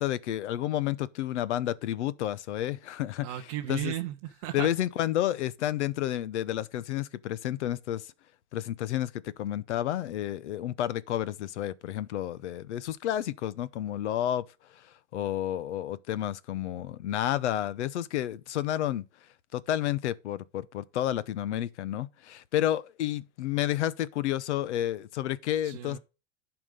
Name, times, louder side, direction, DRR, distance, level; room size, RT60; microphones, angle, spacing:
voice 1, 0.0-3.3 3.7-3.9 4.5-8.1 8.5-14.5 15.1-19.0 19.5-26.0, left 12 dB, 75° left, 0.9 m, -30 dB
voice 2, 3.2-4.7 25.6-26.0, right 13 dB, 25° right, 0.6 m, -35 dB
11.0 x 4.9 x 5.2 m
supercardioid pair, 180°, 35 cm